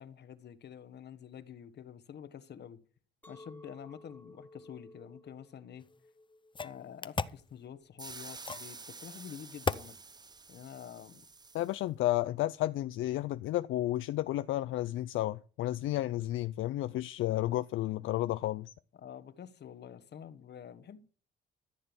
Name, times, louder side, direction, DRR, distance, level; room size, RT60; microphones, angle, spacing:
voice 1, 0.0-2.8 3.3-5.9 6.6-9.9 10.5-11.2 18.9-21.0, left 8 dB, 60° left, 1.3 m, -48 dB
Chink clink, 3.2-8.4, left 2 dB, 10° left, 1.9 m, -56 dB
sound 1, 5.8-5.9 6.5-7.4 8.4-8.7 9.6-9.9, left 4 dB, 25° left, 0.7 m, -34 dB
sound 2, 8.0-11.8, right 4 dB, 20° right, 0.7 m, -49 dB
voice 2, 11.5-18.7, left 15 dB, 80° left, 0.5 m, -32 dB
14.0 x 6.7 x 7.1 m
cardioid pair, 90°, 20 cm